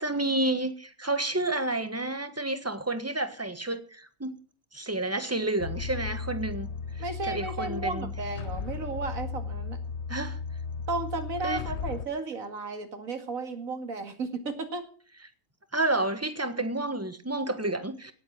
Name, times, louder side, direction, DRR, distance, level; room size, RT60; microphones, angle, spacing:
voice 1, 0.0-4.4 4.7-8.1 10.1-10.4 11.4-11.6 15.7-18.1, right 2 dB, 10° right, 1.4 m, -30 dB
sound 1, 5.6-12.1, left 5 dB, 60° left, 1.1 m, -35 dB
voice 2, 7.0-9.8 10.9-14.8, right 3 dB, 90° right, 2.6 m, -34 dB
18.0 x 8.1 x 7.6 m
omnidirectional pair, 1.4 m